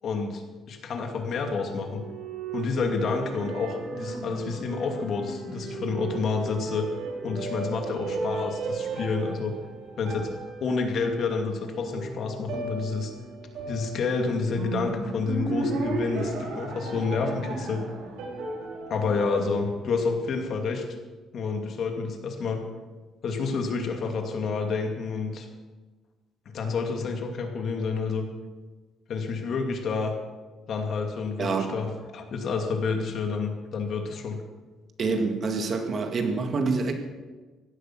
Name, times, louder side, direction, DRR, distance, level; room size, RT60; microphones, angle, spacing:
voice 1, 0.0-0.4 0.7-2.0 2.5-6.9 7.2-9.6 10.0-10.3 10.6-13.1 13.7-17.8 18.9-20.8 21.3-22.6 23.2-25.5 26.5-28.2 29.1-30.1 30.7-34.4, left 4 dB, 55° left, 4 dB, 2.6 m, -29 dB
sound 1, 1.6-20.2, right 3 dB, 90° right, 4.4 m, -35 dB
voice 2, 31.4-31.8 35.0-36.9, right 4 dB, 40° right, 5 dB, 2.0 m, -26 dB
16.5 x 11.5 x 6.2 m, 1.3 s
cardioid pair, 125°, 0 cm